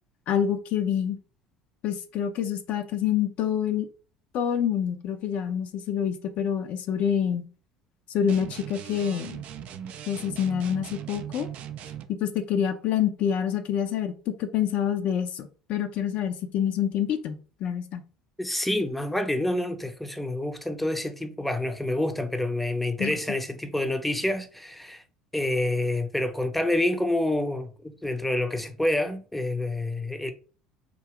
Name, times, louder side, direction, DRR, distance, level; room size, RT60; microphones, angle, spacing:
voice 1, 0.3-1.2 1.8-3.9 4.3-7.5 8.1-9.4 10.1-11.5 12.1-18.0 23.0-23.2, left 9 dB, 50° left, 0.6 m, -27 dB
sound 1, 8.3-12.1, right 10 dB, 50° right, 0.4 m, -39 dB
voice 2, 18.4-25.0 25.3-30.3, left 1 dB, 5° left, 0.6 m, -28 dB
3.8 x 2.7 x 4.6 m
figure-of-eight pair, 60°, 3 cm